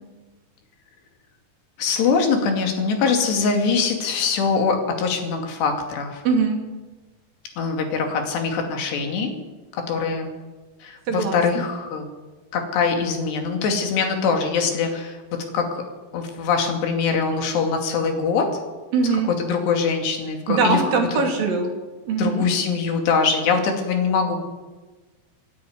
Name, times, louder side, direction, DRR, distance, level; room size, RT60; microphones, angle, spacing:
voice 1, 1.8-6.2 7.6-9.3 9.7-10.3 10.8-12.1 12.5-15.2 15.5-15.8 16.1-18.6 19.4-20.8 21.1-21.2 22.2-24.4, left 5 dB, 80° left, 3 dB, 4.7 m, -23 dB
voice 2, 6.2-6.6 11.1-11.6 18.9-19.3 20.5-21.7 22.1-22.5, right 4 dB, 60° right, 2 dB, 4.2 m, -21 dB
26.5 x 10.5 x 9.5 m, 1.3 s
omnidirectional pair, 4.8 m